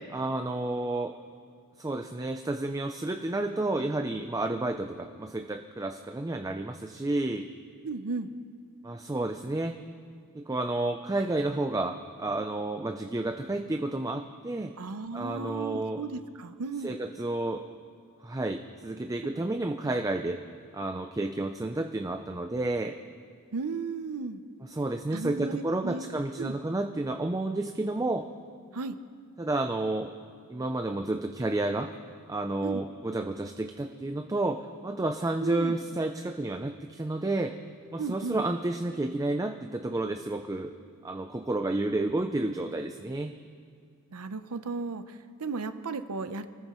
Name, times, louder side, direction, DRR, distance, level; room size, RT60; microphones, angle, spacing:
voice 1, 0.1-1.1 1.8-7.5 8.8-9.8 10.3-14.8 15.1-16.0 16.8-17.6 18.2-20.4 20.7-23.0 24.7-28.3 29.4-30.1 30.5-31.9 32.3-37.5 37.9-40.7 41.0-43.3, right 2 dB, 15° right, 6 dB, 0.5 m, -31 dB
voice 2, 7.8-8.3 14.8-17.0 19.3-19.4 23.5-24.4 25.1-26.6 28.7-29.0 32.6-32.8 35.4-35.8 38.0-38.4 44.1-46.5, right 4 dB, 85° right, 11 dB, 0.7 m, -35 dB
28.0 x 14.0 x 3.1 m, 2.2 s
head